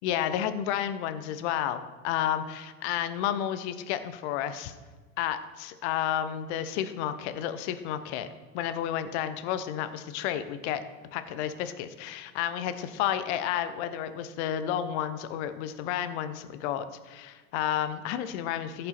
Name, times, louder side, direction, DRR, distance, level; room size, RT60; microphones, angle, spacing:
voice 1, 0.0-4.7 5.2-8.3 8.5-10.8 11.1-18.9, left 10 dB, 50° left, 11 dB, 0.9 m, -31 dB
14.5 x 5.4 x 4.4 m, 1.4 s
figure-of-eight pair, 80°, 42 cm